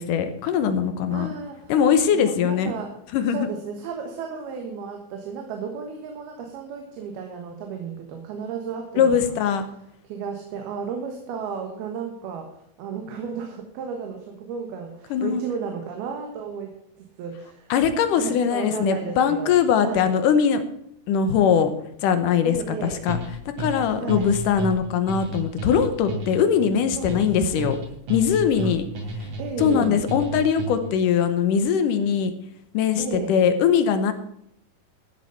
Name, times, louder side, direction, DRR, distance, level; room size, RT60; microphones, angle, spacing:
voice 1, 0.0-1.3 1.7-2.7 3.1-3.5 9.0-9.6 15.1-15.4 17.7-20.6 21.1-21.7 22.0-23.2 23.5-27.8 28.1-28.8 29.6-32.3 32.7-34.1, left 7 dB, 70° left, 9 dB, 2.2 m, -21 dB
voice 2, 1.1-1.7 2.1-3.0 3.3-9.4 10.0-17.7 18.2-19.5 19.8-20.1 22.5-23.1 24.0-24.3 27.0-27.7 28.6-28.7 29.4-30.0 33.0-33.4, right 6 dB, 85° right, 3 dB, 3.4 m, -34 dB
sound 1, 23.1-31.0, equal, 60° right, 4.0 m, -32 dB
13.5 x 7.6 x 5.6 m, 0.73 s
omnidirectional pair, 4.3 m